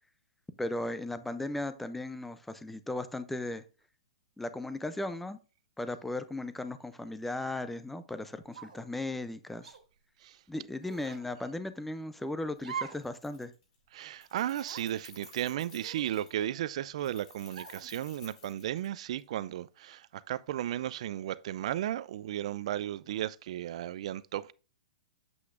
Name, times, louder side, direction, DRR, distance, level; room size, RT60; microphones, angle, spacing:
voice 1, 0.6-3.6 4.4-5.4 5.8-9.7 10.5-13.5, left 2 dB, 5° left, 0.5 m, -36 dB
sound 1, 8.5-8.9 9.6-9.8 10.8-11.3 12.6-13.1 13.5-13.6 14.4-14.9 15.8-16.7 17.5-17.9, right 7 dB, 85° right, 1.7 m, -43 dB
Keys jangling, 12.6-12.7 13.0-13.7 14.0-16.4 17.0-19.2, left 5 dB, 55° left, 3.7 m, -54 dB
voice 2, 13.9-24.5, right 12 dB, 55° right, 0.4 m, -35 dB
7.8 x 6.1 x 2.5 m
hypercardioid pair, 155°, 4 cm